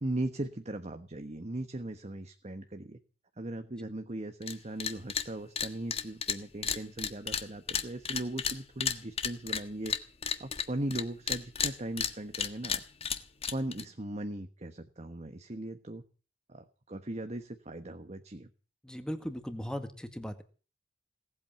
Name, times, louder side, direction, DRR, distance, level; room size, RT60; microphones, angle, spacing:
voice 1, 0.0-3.0 3.4-9.9 10.4-12.8 13.5-16.0 16.5-18.5, right 1 dB, 40° right, 8 dB, 1.2 m, -38 dB
sound 1, 4.4-4.5 4.8-5.3 5.6-11.0 11.3-13.8, left 7 dB, 35° left, 1.4 m, -32 dB
voice 2, 18.8-20.4, equal, 5° left, 8 dB, 1.9 m, -38 dB
18.5 x 8.6 x 8.8 m, 0.38 s
head